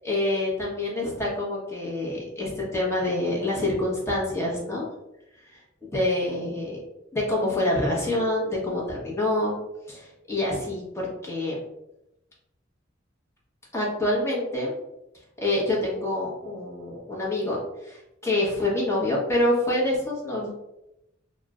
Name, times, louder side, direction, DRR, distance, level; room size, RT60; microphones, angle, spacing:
voice 1, 0.0-4.9 5.5-5.6 5.9-6.8 7.1-9.6 9.9-11.6 13.7-14.7 15.4-20.6, left 1 dB, 15° left, -5 dB, 0.8 m, -26 dB
2.3 x 2.0 x 3.5 m, 0.89 s
head